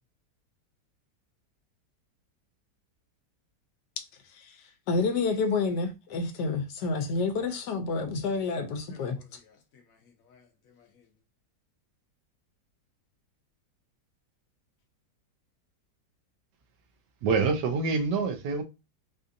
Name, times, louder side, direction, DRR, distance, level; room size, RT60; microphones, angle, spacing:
voice 1, 4.9-9.2, left 4 dB, 80° left, 1.2 m, -29 dB
voice 2, 8.9-11.1, left 5 dB, 65° left, 1.0 m, -58 dB
voice 3, 17.2-18.6, right 4 dB, 80° right, 1.3 m, -26 dB
4.1 x 2.5 x 2.5 m
omnidirectional pair, 1.8 m